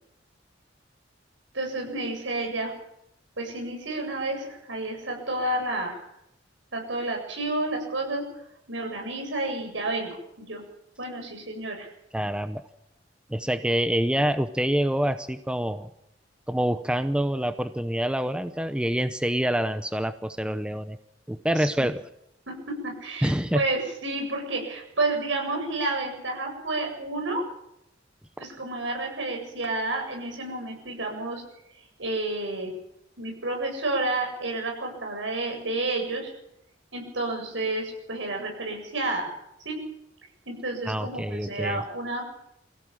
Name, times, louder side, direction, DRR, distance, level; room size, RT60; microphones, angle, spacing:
voice 1, 1.5-2.7 3.4-6.0 6.7-8.2 8.7-10.6 11.0-11.9 21.8-21.9 22.5-22.6 22.8-27.4 28.4-31.4 32.0-32.7 33.2-36.3 36.9-39.3 39.6-39.8 40.5-42.2, right 2 dB, 75° right, 2 dB, 7.9 m, -30 dB
voice 2, 12.1-12.6 13.3-15.9 16.5-21.0 21.3-22.0 23.2-23.6 40.9-41.8, equal, 5° right, 10 dB, 0.7 m, -26 dB
24.5 x 17.0 x 7.5 m, 0.81 s
head